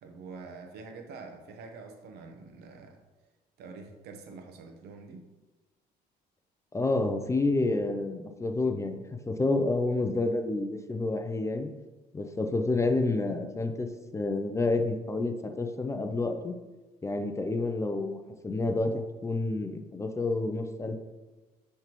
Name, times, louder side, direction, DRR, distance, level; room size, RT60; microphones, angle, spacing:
voice 1, 0.0-3.0 3.6-5.2, right 4 dB, 75° right, 4 dB, 0.9 m, -46 dB
voice 2, 6.7-9.0 9.3-11.7 12.1-13.9 14.1-16.5 17.0-21.0, left 2 dB, 15° left, 6 dB, 0.5 m, -29 dB
9.5 x 3.4 x 3.0 m, 1.2 s
cardioid pair, 110°, 17 cm